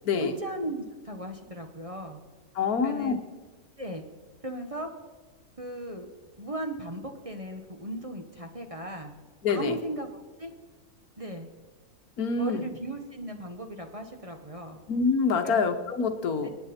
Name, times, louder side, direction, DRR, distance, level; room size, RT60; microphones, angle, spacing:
voice 1, 0.2-2.2 2.8-3.2 3.8-4.0 4.4-4.9 5.6-6.1 6.4-9.1 9.5-10.1 10.4-10.5 11.2-11.5 12.3-14.8 15.4-15.7 16.4-16.5, right 1 dB, 25° right, 4 dB, 1.1 m, -36 dB
voice 2, 2.5-3.1 9.4-9.8 12.2-12.6 14.9-16.5, left 5 dB, 75° left, 8 dB, 1.6 m, -26 dB
28.0 x 9.7 x 4.3 m, 1.4 s
omnidirectional pair, 1.6 m